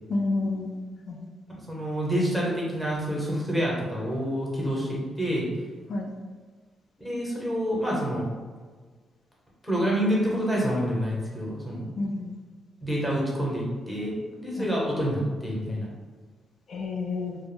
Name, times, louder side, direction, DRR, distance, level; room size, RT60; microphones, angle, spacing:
voice 1, 0.1-0.7 1.1-1.3 5.9-6.1 12.0-12.4 14.6-14.7 16.7-17.4, left 3 dB, 60° left, 0 dB, 0.3 m, -29 dB
voice 2, 1.6-5.5 7.0-8.2 9.6-11.9 12.8-15.9, equal, ahead, -4 dB, 0.9 m, -27 dB
2.2 x 2.0 x 3.3 m, 1.5 s
cardioid pair, 95°, 0 cm